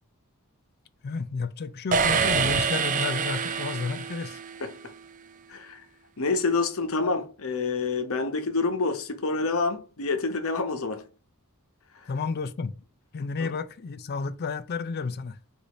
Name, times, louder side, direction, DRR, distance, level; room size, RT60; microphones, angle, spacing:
voice 1, 1.0-4.4 12.1-12.7 13.1-15.4, left 4 dB, 45° left, 0.4 m, -31 dB
sound 1, 1.9-4.7, right 6 dB, 35° right, 0.4 m, -26 dB
voice 2, 4.6-4.9 5.5-5.8 6.2-11.1 11.9-12.1 13.4-13.5, left 3 dB, 65° left, 0.8 m, -28 dB
4.1 x 2.6 x 4.8 m
head